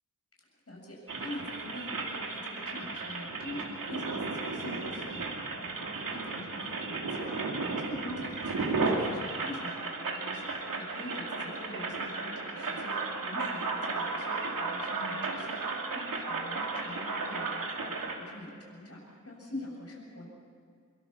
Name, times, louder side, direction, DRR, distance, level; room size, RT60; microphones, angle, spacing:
voice 1, 0.7-15.6 15.9-20.3, left 1 dB, 45° left, -2 dB, 7.7 m, -45 dB
sound 1, 1.1-18.2, right 3 dB, 80° right, 3.1 m, -34 dB
23.5 x 23.0 x 6.9 m, 2.1 s
cardioid pair, 55°, 32 cm